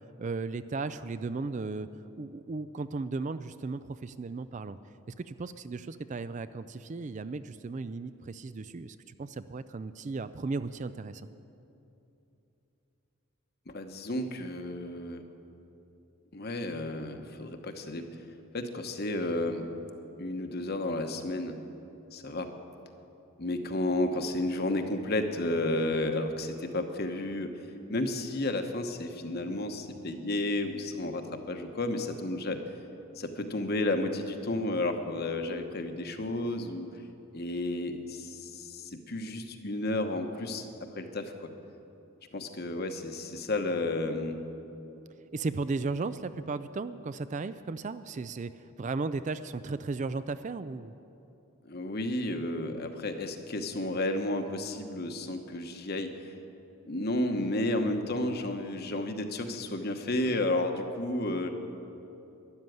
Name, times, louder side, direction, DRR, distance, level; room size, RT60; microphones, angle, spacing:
voice 1, 0.2-1.9 2.2-4.8 5.2-11.2 45.3-50.9, right 3 dB, 35° right, 13 dB, 0.3 m, -35 dB
voice 2, 13.7-15.2 16.3-18.1 18.5-19.7 20.2-21.6 22.1-22.5 23.4-27.5 27.9-32.6 33.2-36.9 37.3-40.7 41.0-41.3 42.3-44.4 51.6-56.3 56.8-61.5, left 1 dB, 45° left, 6 dB, 1.1 m, -32 dB
13.0 x 11.0 x 9.3 m, 2.9 s
head